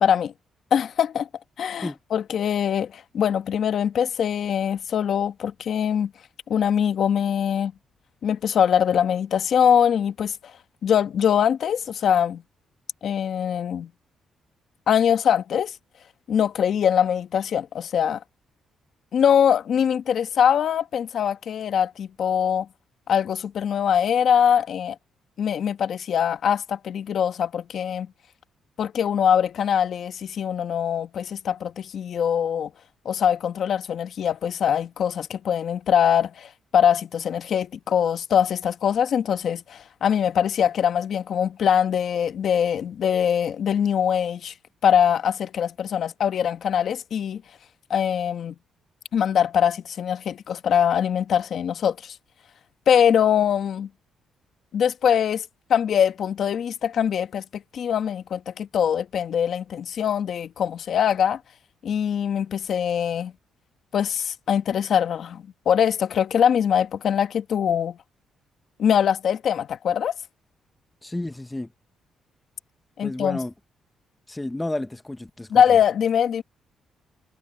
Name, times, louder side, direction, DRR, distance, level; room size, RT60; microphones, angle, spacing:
voice 1, 0.0-0.3 0.7-1.3 1.6-6.1 6.5-7.7 8.2-10.5 10.8-12.4 13.0-13.9 14.9-15.7 16.3-18.2 19.1-22.7 23.1-24.9 25.4-28.1 28.8-32.7 33.0-44.5 44.8-47.4 47.9-48.5 49.1-52.1 52.9-53.9 54.7-61.4 61.8-63.3 63.9-68.0 68.8-70.1 73.0-73.4 75.5-76.4, left 8 dB, 60° left, 1.3 m, -22 dB
voice 2, 71.0-71.7 73.0-73.5 74.3-75.6, left 1 dB, 10° left, 1.0 m, -31 dB
cardioid pair, 90°, 0 cm